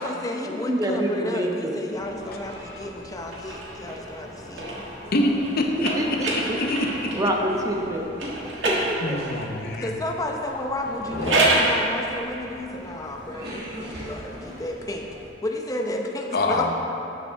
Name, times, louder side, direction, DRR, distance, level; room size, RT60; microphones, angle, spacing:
voice 1, 0.0-4.8 9.8-15.1 15.4-16.7, left 1 dB, 20° left, 1 dB, 0.8 m, -32 dB
voice 2, 0.7-1.7 6.0-6.6 7.1-8.3 8.6-9.2, right 1 dB, 20° right, 0 dB, 0.9 m, -26 dB
sound 1, 1.9-15.3, left 1 dB, 60° right, 2.2 m, -40 dB
sound 2, 3.3-7.3 8.2-9.5 11.0-11.8, right 2 dB, 90° right, 1.6 m, -27 dB
voice 3, 5.1-6.2 6.6-7.1 9.0-9.9 11.2-11.6 16.3-16.7, left 1 dB, 55° left, 3 dB, 0.9 m, -25 dB
13.0 x 6.8 x 3.5 m, 3.0 s
head